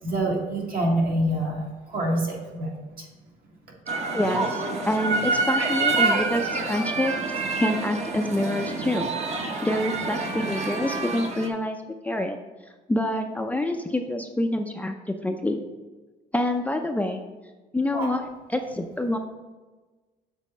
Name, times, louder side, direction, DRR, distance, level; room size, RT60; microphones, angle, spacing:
voice 1, 0.0-3.1 17.9-18.1, right 1 dB, 60° right, -1 dB, 2.0 m, -26 dB
sound 1, 3.9-11.5, right 3 dB, 40° right, 1.0 m, -27 dB
voice 2, 4.1-7.1 7.5-9.1 9.6-11.8 12.0-12.4 12.9-15.6 16.3-17.2 17.7-19.2, left 1 dB, 10° left, 4 dB, 0.5 m, -27 dB
7.2 x 4.1 x 5.4 m, 1.2 s
cardioid pair, 110°, 17 cm